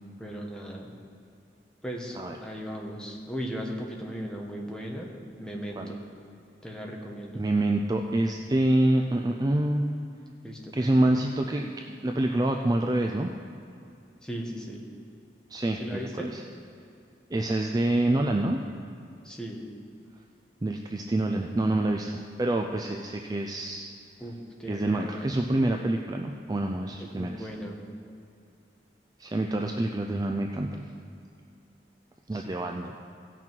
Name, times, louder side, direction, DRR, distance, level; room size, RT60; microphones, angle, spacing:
voice 1, 0.2-0.9 1.8-5.1 5.4-6.0 6.6-7.4 10.4-11.1 14.2-14.8 15.8-16.3 19.2-19.6 24.2-25.3 27.0-27.8 32.3-32.4, equal, 5° left, -1 dB, 1.1 m, -37 dB
voice 2, 7.4-9.8 10.7-11.7 12.0-13.3 15.5-16.4 17.3-18.6 20.6-23.9 24.7-27.5 29.2-30.9 32.3-33.0, right 1 dB, 20° right, 2 dB, 0.4 m, -26 dB
16.0 x 6.1 x 4.5 m, 2.5 s
head